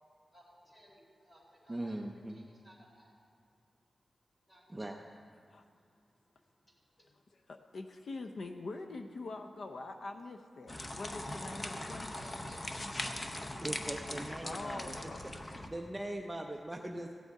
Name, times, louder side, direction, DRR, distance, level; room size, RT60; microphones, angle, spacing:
voice 1, 0.3-2.0 2.3-3.9 4.5-4.8 5.5-7.5 12.1-13.6, equal, 10° left, -5 dB, 3.0 m, -62 dB
voice 2, 1.7-2.4 4.7-5.0 13.6-14.9 15.7-17.1, right 1 dB, 15° right, 1 dB, 0.5 m, -40 dB
voice 3, 7.0-12.1 14.4-15.2, left 3 dB, 65° left, 5 dB, 0.6 m, -44 dB
sound 1, 10.7-15.7, left 1 dB, 25° left, 0.7 m, -40 dB
15.5 x 9.1 x 4.7 m, 2.2 s
wide cardioid pair, 160°, 0 cm